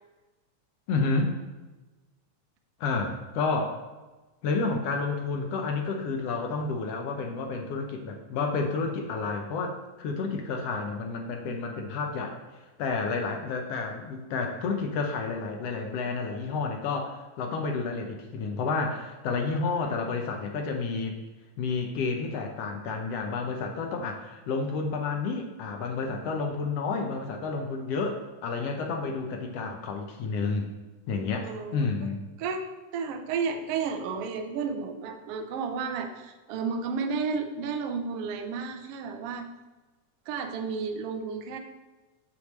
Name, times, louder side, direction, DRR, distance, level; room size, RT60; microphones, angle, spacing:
voice 1, 0.9-1.4 2.8-3.8 4.4-12.4 12.8-21.2 21.6-30.7 31.1-32.2, left 4 dB, 70° left, 3 dB, 1.6 m, -30 dB
voice 2, 31.4-31.9 32.4-32.6 32.9-39.5 40.3-41.6, right 5 dB, 85° right, 5 dB, 1.3 m, -32 dB
8.5 x 3.2 x 6.5 m, 1.2 s
omnidirectional pair, 3.6 m